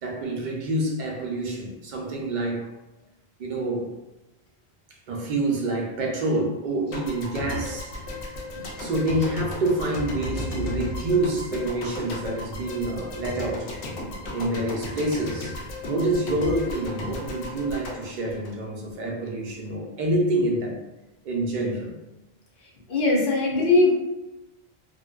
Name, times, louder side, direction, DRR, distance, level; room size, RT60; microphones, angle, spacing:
voice 1, 0.0-2.7 3.4-3.9 5.1-7.9 8.6-13.7 14.3-15.5 15.9-20.8 21.2-21.9, right 2 dB, 55° right, -1 dB, 0.6 m, -27 dB
sound 1, 6.9-19.1, left 2 dB, 90° left, 0.9 m, -34 dB
voice 2, 22.6-23.9, left 3 dB, 60° left, -3 dB, 0.7 m, -21 dB
2.5 x 2.2 x 2.2 m, 1.0 s
omnidirectional pair, 1.1 m